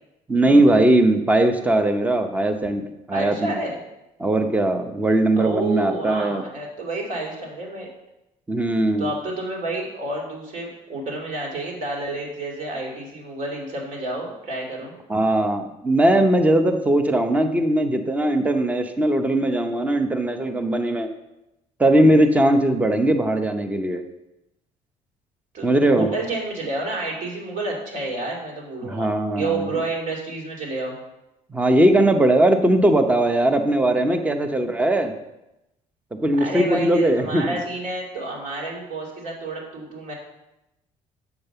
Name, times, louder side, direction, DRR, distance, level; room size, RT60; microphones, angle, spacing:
voice 1, 0.3-3.5 4.2-6.4 8.5-9.1 15.1-21.1 21.8-24.0 25.6-26.1 28.8-29.7 31.5-35.1 36.1-37.6, right 1 dB, 10° right, 7 dB, 0.7 m, -19 dB
voice 2, 3.1-3.8 5.4-7.9 9.0-14.9 25.5-30.9 36.4-40.1, right 2 dB, 60° right, -1 dB, 2.8 m, -29 dB
8.1 x 5.3 x 6.7 m, 0.92 s
cardioid pair, 130°, 14 cm